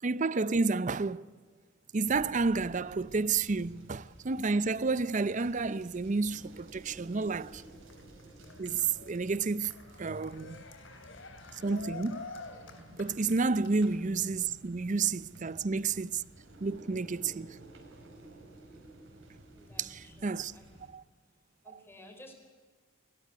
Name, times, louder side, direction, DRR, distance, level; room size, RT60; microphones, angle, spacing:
voice 1, 0.0-1.3 1.9-7.6 8.6-9.7 10.0-10.6 11.6-12.3 13.0-16.2 16.6-17.6 19.8-19.9 20.2-20.5 20.9-21.0, right 4 dB, 40° right, 0.6 m, -30 dB
sound 1, 2.1-20.9, right 1 dB, 80° right, 4.9 m, -53 dB
Cheering, 7.1-14.0, left 3 dB, 70° left, 3.2 m, -49 dB
voice 2, 19.5-20.7 21.6-22.3, left 1 dB, 10° left, 4.6 m, -54 dB
20.5 x 18.0 x 9.5 m
head